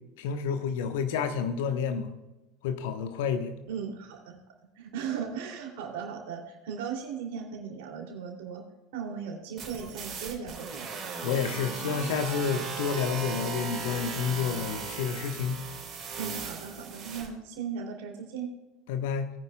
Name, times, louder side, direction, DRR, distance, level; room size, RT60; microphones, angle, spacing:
voice 1, 0.2-2.1 2.6-3.5 11.2-15.6 18.9-19.3, left 6 dB, 60° left, 8 dB, 1.0 m, -29 dB
voice 2, 3.7-4.4 4.8-8.6 8.9-11.1 16.2-18.5, right 7 dB, 60° right, 2 dB, 2.7 m, -37 dB
sound 1, 9.6-17.3, right 5 dB, 30° right, 3.6 m, -37 dB
19.0 x 9.5 x 2.3 m, 1.1 s
figure-of-eight pair, 75°, 0 cm